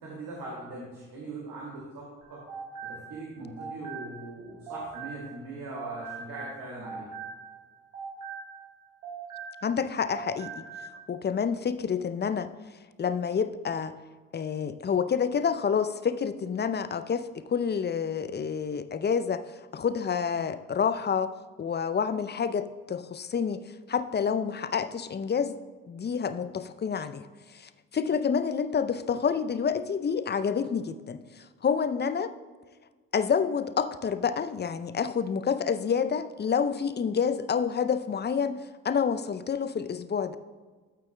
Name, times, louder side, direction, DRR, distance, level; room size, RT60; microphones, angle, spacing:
voice 1, 0.0-2.4 2.8-7.1, right 2 dB, 60° right, -5 dB, 2.5 m, -40 dB
sound 1, 2.2-5.5 5.7-9.8 10.1-10.9, right 6 dB, 85° right, 1.6 m, -41 dB
voice 2, 9.6-10.6 11.1-12.5 13.0-14.0 14.3-21.3 21.6-25.6 25.9-32.3 33.1-38.6 38.8-40.4, left 6 dB, 25° left, 12 dB, 0.6 m, -28 dB
13.0 x 8.6 x 2.3 m, 1.4 s
figure-of-eight pair, 40°, 38 cm